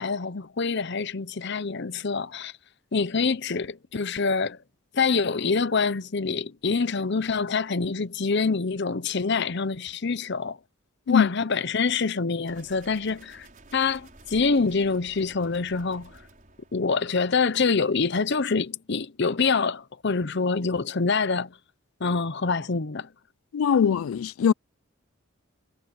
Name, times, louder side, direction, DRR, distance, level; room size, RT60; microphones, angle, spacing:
voice 1, 0.0-2.5 2.9-4.6 4.9-10.6 11.1-13.5 13.7-16.2 16.7-21.6 22.0-23.1, left 4 dB, 50° left, 0.7 m, -26 dB
sound 1, 12.5-17.4, right 2 dB, 40° right, 5.3 m, -52 dB
voice 2, 23.5-24.5, left 7 dB, 70° left, 0.3 m, -21 dB
head